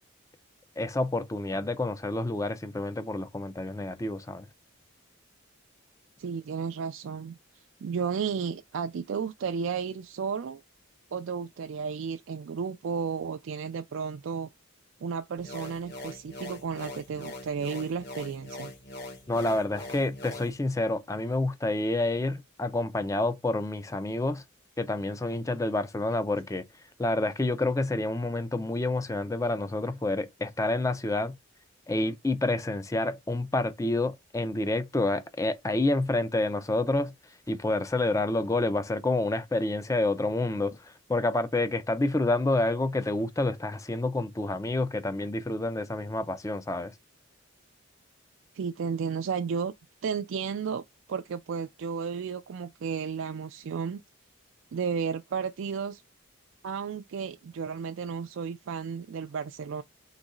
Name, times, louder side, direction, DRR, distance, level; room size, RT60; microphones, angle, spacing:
voice 1, 0.8-4.5 19.3-24.4 24.8-26.6 27.0-31.4 31.9-37.1 37.5-46.9, left 2 dB, 15° left, 0.4 m, -28 dB
voice 2, 6.2-7.4 7.8-10.6 11.1-14.5 15.0-18.7 48.5-49.7 50.0-50.8 51.1-54.0 54.7-56.0 56.6-59.8, right 6 dB, 65° right, 0.3 m, -33 dB
sound 1, 15.4-20.5, left 1 dB, 50° left, 1.3 m, -42 dB
4.0 x 3.0 x 3.6 m
head